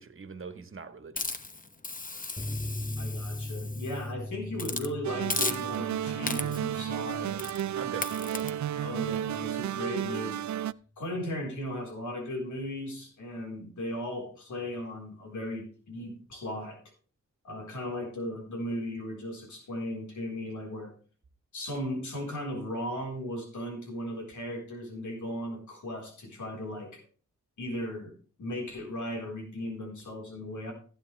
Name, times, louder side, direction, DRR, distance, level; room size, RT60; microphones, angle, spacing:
voice 1, 0.0-1.4 7.7-8.6, right 5 dB, 45° right, 1.5 m, -43 dB
Hiss, 1.2-4.0 4.6-4.9 5.3-5.9 6.3-6.7 7.4-7.6 8.0-8.5, left 3 dB, 30° left, 1.1 m, -35 dB
sound 1, 2.4-9.5 9.7-9.8 10.2-10.3, left 1 dB, 10° left, 0.6 m, -40 dB
voice 2, 3.0-7.4 8.8-10.5 11.0-16.8 17.4-20.9 21.5-27.0 27.6-28.1 28.4-30.7, left 1 dB, 85° left, 4.2 m, -36 dB
sound 2, 5.0-10.7, right 10 dB, 70° right, 0.5 m, -32 dB
15.5 x 9.0 x 3.4 m
wide cardioid pair, 85°, 29 cm